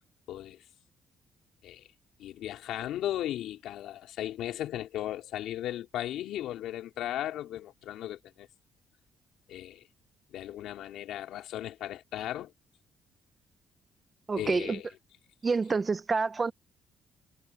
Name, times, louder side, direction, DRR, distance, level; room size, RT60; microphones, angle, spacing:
voice 1, 0.3-0.6 1.6-1.9 2.2-8.5 9.5-9.9 10.3-12.5 14.4-14.8, left 12 dB, 85° left, 4.2 m, -36 dB
voice 2, 14.3-14.8 15.4-16.5, right 4 dB, 30° right, 0.9 m, -28 dB
cardioid pair, 90°, 0 cm